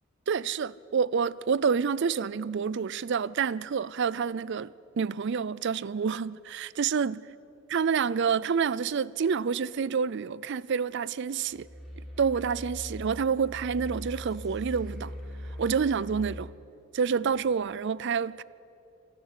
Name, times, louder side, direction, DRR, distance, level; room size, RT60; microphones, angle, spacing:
voice 1, 0.3-7.2 7.7-11.7 12.2-15.1 15.6-16.5 16.9-18.4, right 6 dB, 55° right, 0.4 m, -28 dB
sound 1, 11.5-16.5, equal, ahead, 4.3 m, -41 dB
26.0 x 12.0 x 8.4 m
head